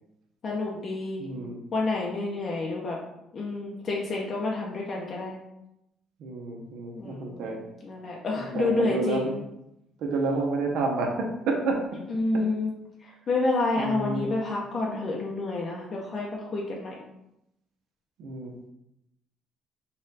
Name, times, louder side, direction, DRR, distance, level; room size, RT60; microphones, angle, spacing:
voice 1, 0.4-1.3 1.7-3.0 3.3-5.4 7.0-7.5 7.8-9.4 12.1-12.7 13.0-16.9, left 2 dB, 40° left, -2 dB, 0.6 m, -29 dB
voice 2, 1.2-1.6 6.2-7.6 8.4-9.4 10.0-11.8 13.8-14.3 18.2-18.5, right 3 dB, 75° right, 1 dB, 0.8 m, -29 dB
4.2 x 2.4 x 3.9 m, 0.85 s
cardioid pair, 125°, 0 cm